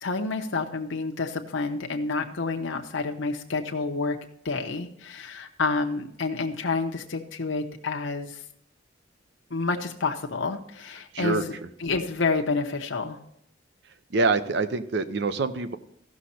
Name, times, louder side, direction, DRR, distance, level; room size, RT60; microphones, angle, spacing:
voice 1, 0.0-4.2 4.4-8.4 9.5-13.2, left 3 dB, 90° left, 3 dB, 0.8 m, -29 dB
voice 2, 14.1-15.8, right 3 dB, 65° right, 11 dB, 0.7 m, -25 dB
14.5 x 6.4 x 4.3 m, 0.74 s
head